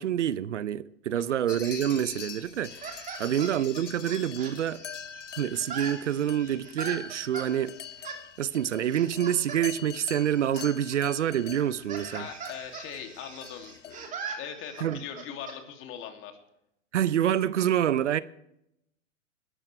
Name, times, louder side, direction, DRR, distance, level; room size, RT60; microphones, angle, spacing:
voice 1, 0.0-4.8 5.4-7.8 8.4-12.3 14.8-15.1 16.9-18.2, right 10 dB, 70° right, 0.8 m, -27 dB
sound 1, 1.5-14.1, left 9 dB, 75° left, 1.0 m, -44 dB
sound 2, 1.5-5.2 5.5-7.5 8.0-8.2 8.9-9.6 9.9-10.7 10.9-11.0 11.5-15.6, right 5 dB, 20° right, 2.9 m, -41 dB
voice 2, 12.1-16.3, left 8 dB, 35° left, 2.8 m, -41 dB
20.0 x 12.5 x 3.4 m
hypercardioid pair, 110°, 37 cm